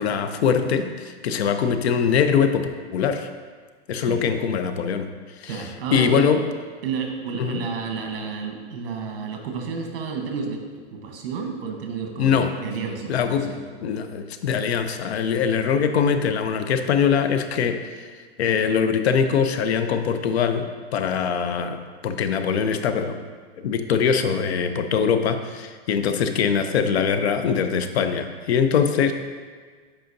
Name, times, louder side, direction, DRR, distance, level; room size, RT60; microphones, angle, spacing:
voice 1, 0.0-3.3 3.9-5.1 5.4-6.4 7.4-7.6 12.2-12.6 13.1-13.5 13.8-18.1 18.4-23.2 23.6-29.1, left 6 dB, 80° left, 8 dB, 0.6 m, -22 dB
voice 2, 5.5-6.3 6.8-13.6, right 5 dB, 60° right, 2 dB, 1.2 m, -31 dB
7.8 x 5.0 x 2.6 m, 1.5 s
supercardioid pair, 170°, 32 cm